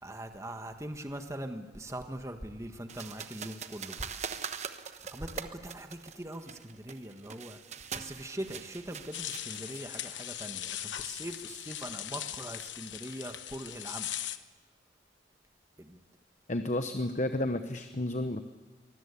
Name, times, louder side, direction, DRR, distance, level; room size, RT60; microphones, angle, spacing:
voice 1, 0.0-4.1 5.1-7.6 7.9-14.1 15.8-16.0, right 1 dB, 15° right, 6 dB, 1.4 m, -41 dB
sound 1, 2.9-10.2, right 6 dB, 40° right, 1.1 m, -43 dB
sound 2, 9.1-14.4, left 12 dB, 85° left, 1.0 m, -39 dB
voice 2, 16.5-18.4, left 1 dB, 40° left, 8 dB, 1.0 m, -31 dB
24.5 x 20.0 x 8.4 m, 1.2 s
head